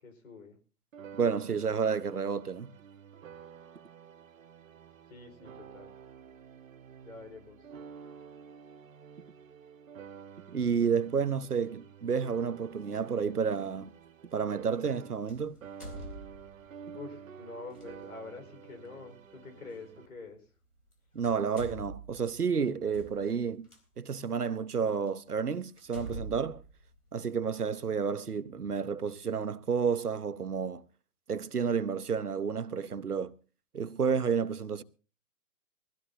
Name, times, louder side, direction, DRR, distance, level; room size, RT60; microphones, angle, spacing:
voice 1, 0.0-0.6 5.1-5.9 7.0-7.6 16.9-20.5, left 3 dB, 70° left, 4.7 m, -46 dB
sound 1, 0.9-15.4 15.6-20.1, right 7 dB, 65° right, 1.2 m, -50 dB
voice 2, 1.2-2.7 10.5-13.9 14.3-15.6 21.1-23.7 24.0-26.6 27.1-30.8 31.3-33.3 33.7-34.8, right 6 dB, 85° right, 1.0 m, -30 dB
sound 2, 13.2-13.4 15.3-16.8 17.7-17.9 19.7-19.8 20.8-20.9 21.2-23.8 24.5-24.6 25.1-25.2 25.8-27.6, right 1 dB, 85° left, 3.9 m, -45 dB
22.0 x 15.5 x 2.7 m
figure-of-eight pair, 125°, 44 cm